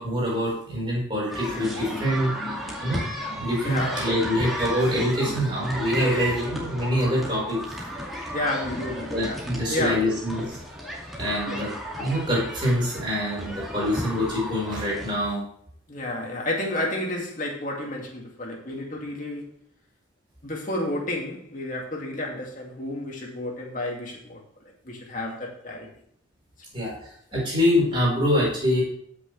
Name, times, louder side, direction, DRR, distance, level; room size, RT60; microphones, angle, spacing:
voice 1, 0.0-2.3 2.8-3.0 3.3-7.6 9.1-10.6 11.2-11.7 12.0-15.4 26.7-28.8, equal, 25° right, -5 dB, 4.8 m, -25 dB
sound 1, 1.3-15.1, equal, ahead, 2.3 m, -34 dB
voice 2, 1.4-4.4 5.2-5.5 6.0-6.3 8.3-10.1 11.5-11.6 15.9-19.5 20.4-24.4 24.8-25.9 26.8-27.0, left 1 dB, 40° left, -1 dB, 2.4 m, -32 dB
14.5 x 6.3 x 3.4 m, 0.64 s
head